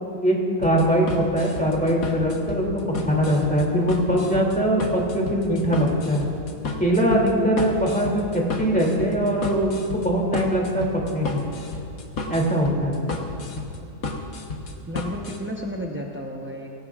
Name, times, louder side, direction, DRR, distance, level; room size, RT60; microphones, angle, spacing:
voice 1, 0.1-6.2 6.8-8.2 8.6-10.8 11.1-11.4 12.3-12.9, equal, 5° left, -2 dB, 2.6 m, -22 dB
sound 1, 0.6-15.4, left 3 dB, 60° left, 1.6 m, -32 dB
voice 2, 14.9-16.7, equal, 15° right, -2 dB, 0.5 m, -32 dB
21.5 x 17.5 x 2.4 m, 2.7 s
omnidirectional pair, 1.7 m